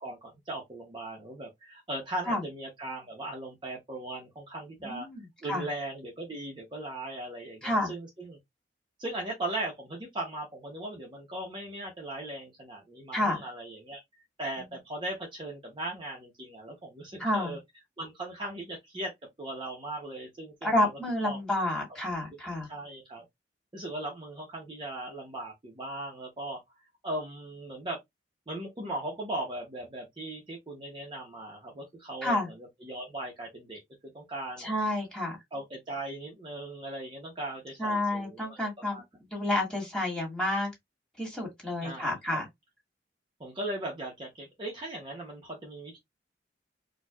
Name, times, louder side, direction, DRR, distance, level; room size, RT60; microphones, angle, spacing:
voice 1, 0.0-5.1 5.4-8.4 9.0-14.0 14.4-17.6 18.0-19.1 19.4-21.0 21.2-21.4 22.6-23.2 23.7-26.6 27.0-28.0 28.5-33.8 34.1-34.7 35.5-38.6 38.9-39.0 41.8-42.4 43.4-46.0, right 1 dB, 25° right, 0.8 m, -38 dB
voice 2, 4.8-5.7 7.6-7.9 13.1-13.4 17.2-17.6 20.6-22.7 32.2-32.5 34.6-35.4 37.8-39.0 39.3-40.7 41.2-42.5, left 1 dB, 5° left, 1.7 m, -29 dB
4.4 x 2.3 x 2.3 m
head